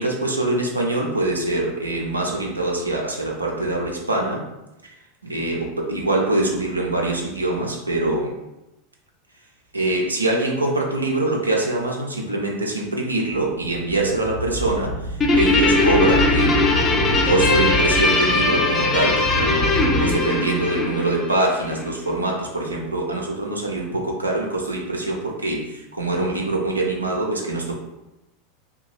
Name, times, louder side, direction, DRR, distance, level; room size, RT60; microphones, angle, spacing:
voice 1, 0.0-4.4 5.2-8.3 9.7-16.7 17.1-27.7, right 2 dB, 85° right, -1 dB, 0.5 m, -24 dB
sound 1, 13.3-20.1, equal, 70° left, 1.1 m, -27 dB
Guitar, 15.2-21.9, left 3 dB, 20° left, 0.5 m, -20 dB
2.7 x 2.2 x 3.0 m, 0.93 s
figure-of-eight pair, 85°, 0 cm